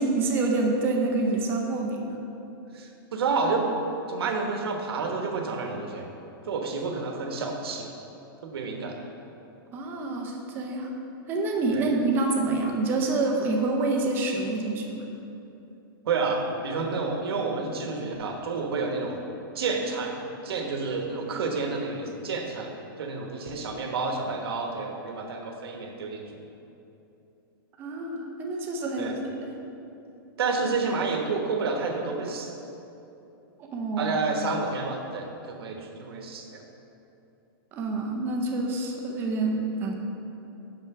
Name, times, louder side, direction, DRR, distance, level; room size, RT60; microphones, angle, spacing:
voice 1, 0.0-2.2 9.7-10.9 11.3-15.0 27.8-29.5 33.6-34.1 37.7-39.9, right 3 dB, 15° right, 1 dB, 0.6 m, -27 dB
voice 2, 2.7-6.1 6.5-7.9 8.4-8.9 11.7-11.9 16.1-19.2 19.5-22.7 23.0-26.3 29.0-29.2 30.4-32.5 34.0-36.6, right 4 dB, 75° right, 2 dB, 1.1 m, -29 dB
5.8 x 5.7 x 5.8 m, 2.9 s
supercardioid pair, 170°, 13 cm